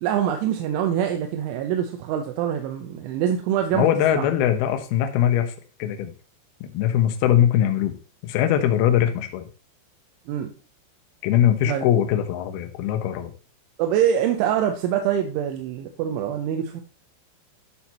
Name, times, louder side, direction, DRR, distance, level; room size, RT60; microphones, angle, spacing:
voice 1, 0.0-3.9 4.1-4.3 10.3-10.5 11.7-11.9 13.8-16.8, right 9 dB, 80° right, 4 dB, 3.0 m, -24 dB
voice 2, 3.7-5.5 5.8-6.1 6.6-7.9 8.2-9.5 11.2-13.3, left 10 dB, 85° left, 6 dB, 2.2 m, -21 dB
10.5 x 4.5 x 4.2 m, 0.35 s
omnidirectional pair, 5.8 m